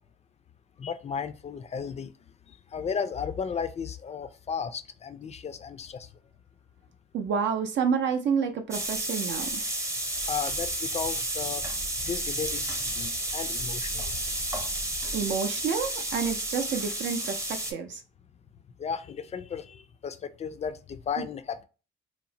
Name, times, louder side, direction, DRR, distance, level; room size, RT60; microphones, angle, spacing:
voice 1, 0.8-2.1 2.5-6.1 10.2-11.7 12.0-14.2 18.8-21.6, left 6 dB, 35° left, 0.3 m, -34 dB
voice 2, 7.1-9.6 15.1-18.0 21.2-21.3, right 6 dB, 65° right, 0.5 m, -29 dB
sound 1, 8.7-17.7, right 1 dB, 15° right, 0.6 m, -31 dB
2.9 x 2.1 x 2.6 m
cardioid pair, 90°, 20 cm